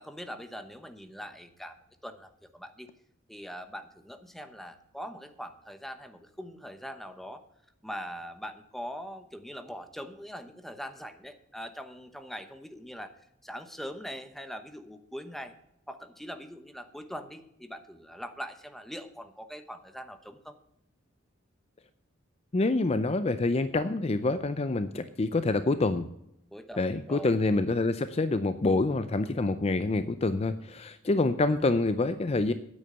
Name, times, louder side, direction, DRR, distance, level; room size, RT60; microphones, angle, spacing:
voice 1, 0.0-1.8 2.0-2.9 3.3-7.4 7.8-13.1 13.4-15.5 15.9-20.6 26.5-27.3, equal, ahead, 8 dB, 0.9 m, -42 dB
voice 2, 22.5-26.0 26.8-32.5, left 2 dB, 30° left, 12 dB, 0.5 m, -27 dB
9.7 x 8.7 x 6.8 m, 0.78 s
head